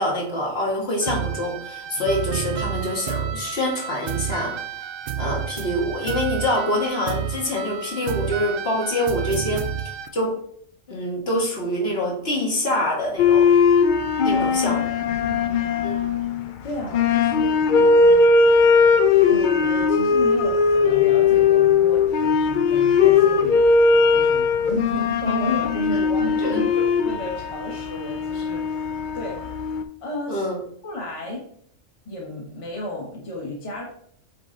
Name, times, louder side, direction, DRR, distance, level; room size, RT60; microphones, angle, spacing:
voice 1, 0.0-4.6 5.2-9.7 10.1-10.3 10.9-13.4 14.2-15.0 15.8-16.0 26.5-26.6 30.3-30.6, left 1 dB, 50° left, -2 dB, 1.7 m, -25 dB
sound 1, 1.0-10.1, right 8 dB, 60° right, 0.6 m, -30 dB
sound 2, 13.2-29.8, left 5 dB, 70° left, 0.4 m, -19 dB
voice 2, 14.3-16.1 16.6-18.3 19.3-23.7 24.1-29.4 30.0-30.5 30.8-31.4 32.0-33.8, left 1 dB, 25° left, -2 dB, 1.3 m, -33 dB
7.6 x 3.2 x 3.8 m, 0.64 s
omnidirectional pair, 1.4 m